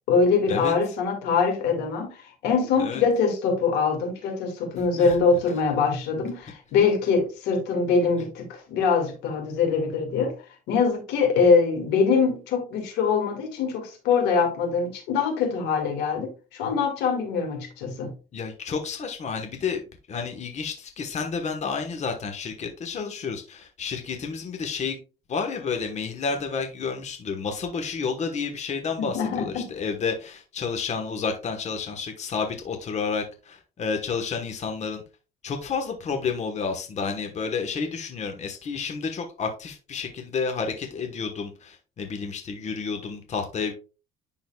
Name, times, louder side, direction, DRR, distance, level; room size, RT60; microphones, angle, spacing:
voice 1, 0.1-10.3 10.7-18.1 29.0-29.7, left 5 dB, 90° left, 1.9 m, -23 dB
voice 2, 18.3-19.8 20.1-25.0 25.3-35.0 35.4-43.7, left 5 dB, 40° left, 1.2 m, -30 dB
10.5 x 3.9 x 2.3 m
cardioid pair, 110°, 17 cm